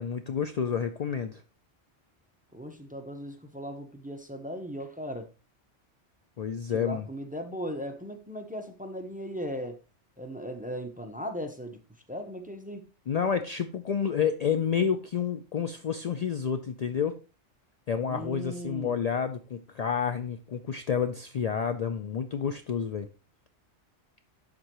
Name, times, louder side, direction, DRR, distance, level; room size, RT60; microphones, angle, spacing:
voice 1, 0.0-1.4 6.4-7.1 13.1-17.2 17.9-23.1, left 7 dB, 75° left, 0.3 m, -29 dB
voice 2, 2.5-5.3 6.7-9.8 10.2-11.8 12.1-12.8 18.1-18.9, equal, 10° right, 0.5 m, -37 dB
11.0 x 3.7 x 3.0 m
omnidirectional pair, 1.2 m